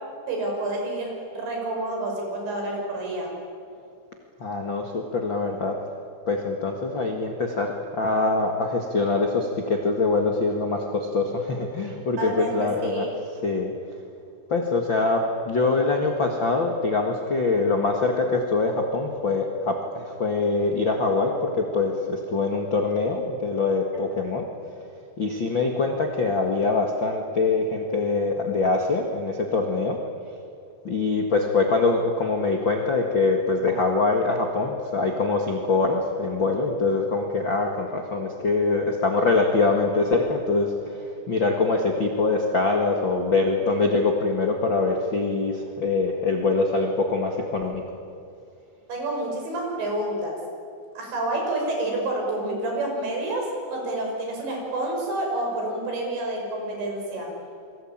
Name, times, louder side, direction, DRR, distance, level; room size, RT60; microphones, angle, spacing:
voice 1, 0.3-3.3 12.2-13.1 48.9-50.4 51.0-57.3, right 1 dB, 65° right, 1 dB, 8.2 m, -28 dB
voice 2, 4.4-5.8 6.3-13.1 13.4-13.7 14.5-24.5 25.2-30.0 30.8-47.8, left 3 dB, 85° left, 2 dB, 1.0 m, -24 dB
28.5 x 23.5 x 8.9 m, 2.4 s
omnidirectional pair, 5.5 m